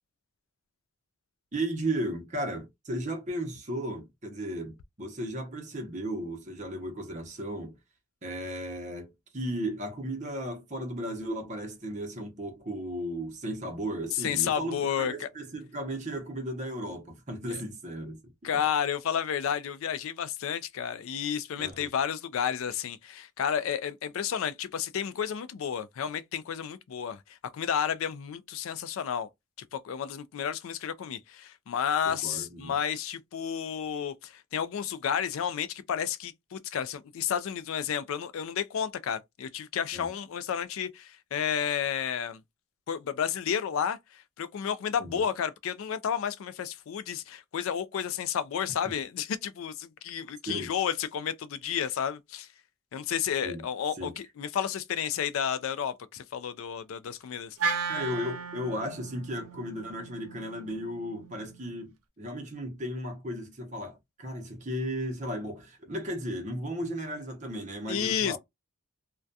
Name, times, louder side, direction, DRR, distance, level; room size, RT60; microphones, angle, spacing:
voice 1, 1.5-7.8 8.2-18.2 21.6-21.9 32.1-32.8 39.9-40.1 45.0-45.2 50.5-50.7 53.4-53.6 54.0-54.1 57.9-68.4, right 1 dB, 35° right, 0.7 m, -35 dB
voice 2, 14.1-15.3 17.5-17.6 18.4-29.3 29.7-42.4 42.9-52.5 52.9-57.6 67.9-68.4, left 8 dB, 70° left, 0.3 m, -31 dB
Wind instrument woodwind instrument, 57.6-61.9, right 5 dB, 90° right, 0.5 m, -36 dB
2.3 x 2.2 x 2.6 m
head